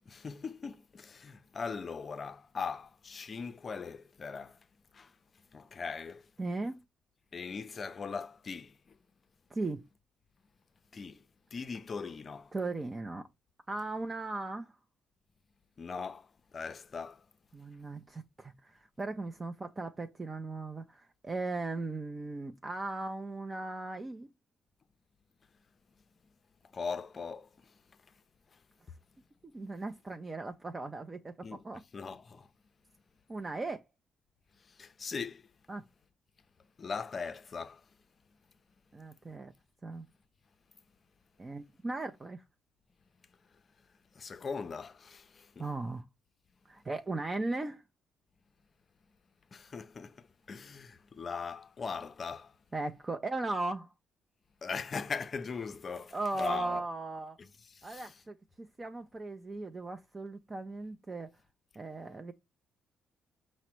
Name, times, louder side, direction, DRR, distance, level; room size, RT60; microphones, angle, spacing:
voice 1, 0.1-4.6 4.9-5.1 5.5-6.3 7.3-9.0 10.9-11.2 11.5-12.5 15.8-17.2 26.7-27.7 31.4-32.5 34.7-35.4 36.8-37.8 44.1-45.7 49.5-52.5 54.6-56.8 57.4-58.2, left 5 dB, 40° left, 0.5 m, -40 dB
voice 2, 6.4-6.8 9.5-9.9 12.5-13.3 13.7-14.8 17.5-24.3 29.5-31.8 33.3-33.8 35.7-35.8 38.9-39.5 39.8-40.1 41.4-42.4 45.6-46.0 46.7-47.8 52.7-53.9 56.1-57.4 57.8-61.3 61.8-62.3, right 2 dB, 25° right, 0.4 m, -37 dB
4.9 x 2.1 x 4.3 m
cardioid pair, 90°, 0 cm